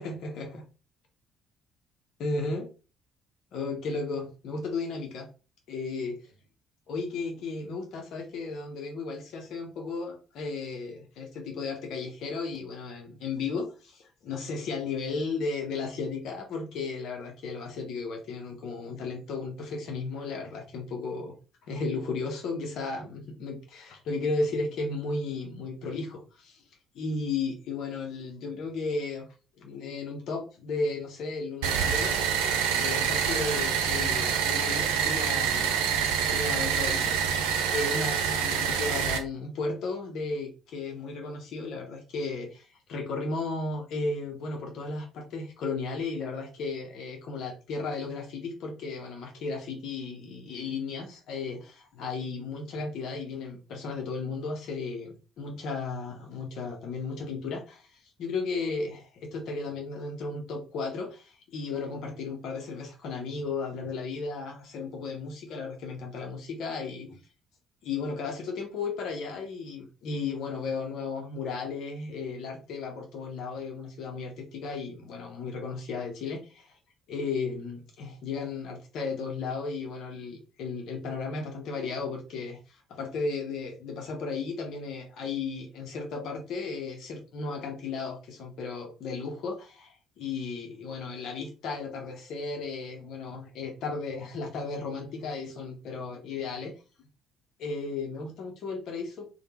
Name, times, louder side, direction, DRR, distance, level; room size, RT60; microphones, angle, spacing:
voice 1, 0.0-0.6 2.2-2.7 3.5-5.3 5.7-6.3 6.9-21.4 21.6-26.6 26.9-29.3 29.6-32.2 32.7-35.8 36.2-37.3 37.7-67.2 67.8-76.8 77.1-96.7 97.6-99.2, left 4 dB, 55° left, 0.5 m, -34 dB
sound 1, 31.6-39.2, right 7 dB, 65° right, 0.4 m, -26 dB
3.2 x 2.0 x 2.9 m
figure-of-eight pair, 50°, 0 cm